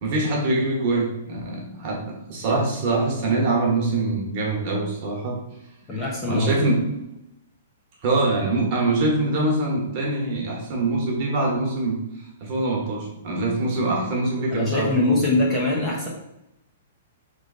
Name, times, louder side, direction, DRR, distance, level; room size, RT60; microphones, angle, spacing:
voice 1, 0.0-5.4 5.9-6.8 8.0-12.0 12.4-15.2, right 2 dB, 35° right, -1 dB, 1.3 m, -24 dB
voice 2, 5.9-6.5 14.5-16.1, left 2 dB, 15° left, -4 dB, 0.7 m, -22 dB
3.8 x 3.2 x 4.0 m, 0.87 s
hypercardioid pair, 170°, 0 cm